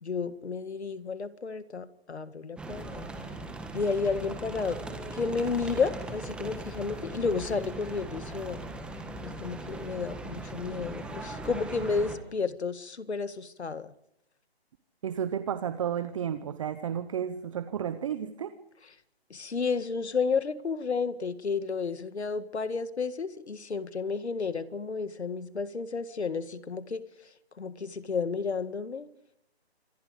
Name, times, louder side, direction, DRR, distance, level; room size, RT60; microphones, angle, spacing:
voice 1, 0.0-3.1 3.7-4.8 5.1-8.7 9.2-13.9 19.3-27.0 27.6-29.1, left 5 dB, 85° left, 2.0 m, -32 dB
sound 1, 2.6-12.2, right 2 dB, 5° right, 1.6 m, -39 dB
voice 2, 15.0-18.5, right 8 dB, 30° right, 0.9 m, -32 dB
26.0 x 23.5 x 5.1 m
hypercardioid pair, 155°, 32 cm